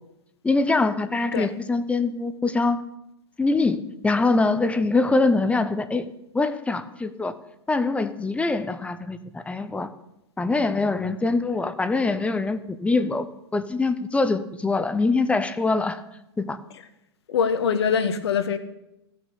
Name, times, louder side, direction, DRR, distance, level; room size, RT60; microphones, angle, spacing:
voice 1, 0.4-2.8 3.4-6.1 6.3-7.3 7.7-9.9 10.4-13.3 13.5-16.0 16.4-16.6, left 3 dB, 10° left, 12 dB, 0.7 m, -23 dB
voice 2, 17.3-18.6, left 6 dB, 70° left, 11 dB, 1.3 m, -23 dB
15.0 x 6.4 x 6.8 m, 0.87 s
hypercardioid pair, 110°, 14 cm